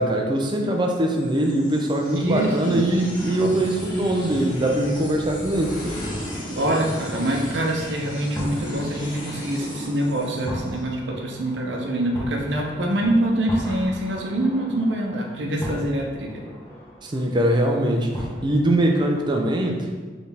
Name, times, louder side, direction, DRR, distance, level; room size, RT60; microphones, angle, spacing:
voice 1, 0.0-5.8 17.0-20.0, right 1 dB, 25° right, 2 dB, 0.5 m, -22 dB
sound 1, 1.1-10.8, left 1 dB, 50° left, 1.0 m, -34 dB
voice 2, 2.1-2.8 6.5-16.4, right 1 dB, 75° right, 0 dB, 0.8 m, -25 dB
sound 2, 7.8-19.2, left 1 dB, 15° left, 0.9 m, -37 dB
4.5 x 3.4 x 3.4 m, 1.5 s
head